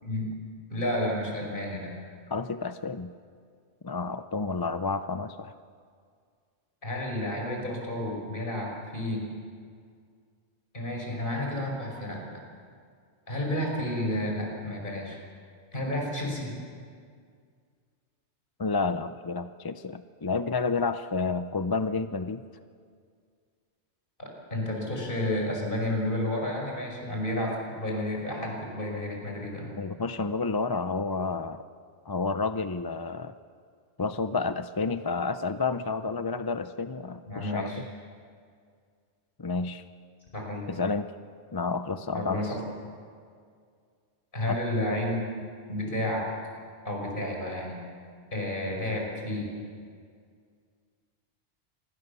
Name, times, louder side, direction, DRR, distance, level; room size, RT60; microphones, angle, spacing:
voice 1, 0.0-0.3 0.7-1.9 6.8-9.2 10.7-12.2 13.3-15.2 15.7-16.5 24.2-29.7 37.3-37.8 40.3-40.7 42.1-42.6 44.3-45.2 45.7-46.3 46.8-47.8 48.3-49.5, left 1 dB, 50° left, 0 dB, 5.8 m, -31 dB
voice 2, 2.3-3.1 3.8-5.5 18.6-22.4 29.8-31.6 32.1-33.3 34.0-37.7 39.4-39.8 40.7-41.1 41.5-42.5 44.5-44.6, left 4 dB, 25° left, 10 dB, 0.5 m, -30 dB
27.0 x 20.5 x 6.9 m, 2.1 s
omnidirectional pair, 1.2 m